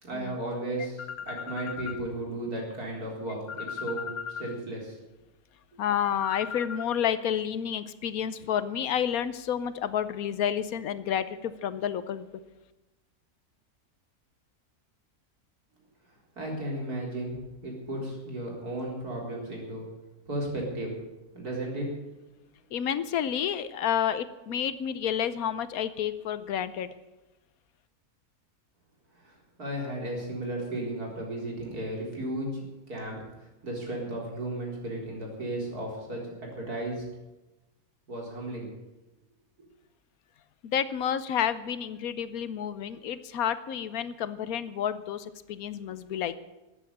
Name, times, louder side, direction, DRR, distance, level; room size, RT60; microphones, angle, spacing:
voice 1, 0.0-4.1 4.4-5.0 16.3-19.9 20.3-20.9 21.3-22.0 29.1-33.2 33.6-37.0 38.1-38.7, right 1 dB, 85° right, -1 dB, 4.6 m, -34 dB
voice 2, 1.2-1.9 3.8-4.4 5.8-12.2 22.7-26.9 40.6-46.3, left 9 dB, 70° left, 14 dB, 1.2 m, -30 dB
13.5 x 8.9 x 9.9 m, 1.0 s
omnidirectional pair, 1.6 m